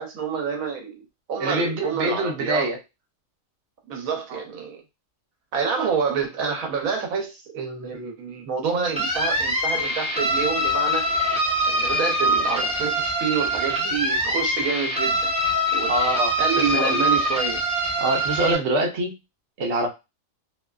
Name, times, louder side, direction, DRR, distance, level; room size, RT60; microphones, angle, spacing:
voice 1, 0.0-2.7 3.9-4.8 5.5-11.1 11.7-15.3 15.7-15.9 16.4-17.6, right 6 dB, 80° right, 1.1 m, -28 dB
voice 2, 1.4-2.8 4.3-4.4 15.9-17.0 18.0-19.1 19.6-19.9, right 2 dB, 60° right, 0.9 m, -25 dB
sound 1, 9.0-18.6, equal, 5° right, 0.7 m, -23 dB
2.7 x 2.3 x 2.2 m
omnidirectional pair, 1.4 m